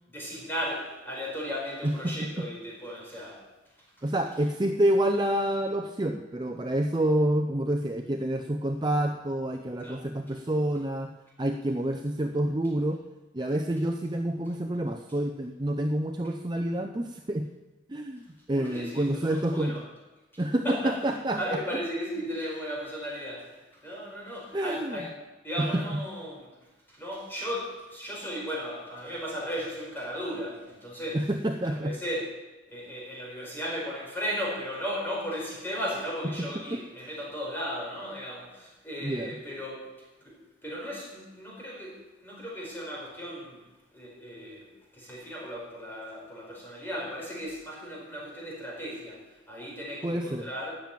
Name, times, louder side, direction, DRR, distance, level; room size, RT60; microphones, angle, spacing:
voice 1, 0.1-3.5 4.0-4.1 9.8-10.0 18.6-19.8 20.3-21.0 21.3-25.1 25.4-26.5 26.9-31.3 31.7-32.3 32.7-43.6 43.9-44.7 44.9-50.8, equal, 10° left, -3 dB, 4.5 m, -36 dB
voice 2, 1.8-2.5 4.0-11.1 11.4-13.0 13.3-17.5 17.9-19.8 20.4-21.6 24.5-25.0 25.6-25.8 31.1-31.9 36.4-36.8 39.0-39.3 50.0-50.5, right 1 dB, 25° right, 4 dB, 0.6 m, -28 dB
13.0 x 7.4 x 9.1 m, 1.1 s
head